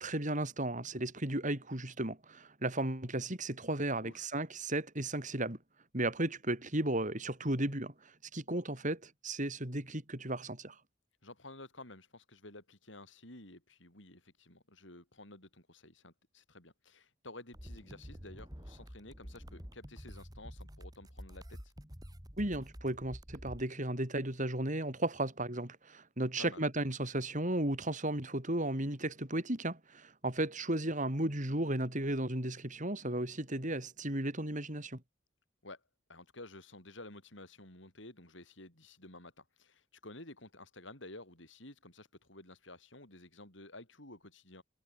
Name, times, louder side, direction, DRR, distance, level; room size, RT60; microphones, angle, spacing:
voice 1, 0.0-5.6 5.9-10.7 22.4-35.0, right 1 dB, 40° right, 4.9 m, -35 dB
voice 2, 11.2-21.6 26.4-26.7 35.6-35.8 36.1-44.6, left 2 dB, 65° left, 7.6 m, -52 dB
sound 1, 17.5-23.6, equal, 20° right, 6.0 m, -49 dB
head